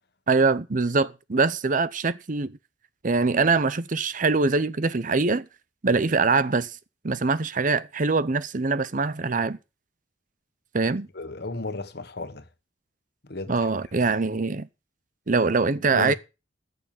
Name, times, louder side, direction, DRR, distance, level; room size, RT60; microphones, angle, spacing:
voice 1, 0.3-2.6 3.0-5.5 5.8-6.7 7.0-9.6 10.7-11.1 13.5-14.7 15.3-16.1, right 4 dB, 45° right, 0.8 m, -23 dB
voice 2, 11.1-12.4 13.3-13.7 14.0-14.1 15.9-16.1, left 2 dB, 60° left, 1.5 m, -33 dB
14.5 x 6.7 x 7.4 m
head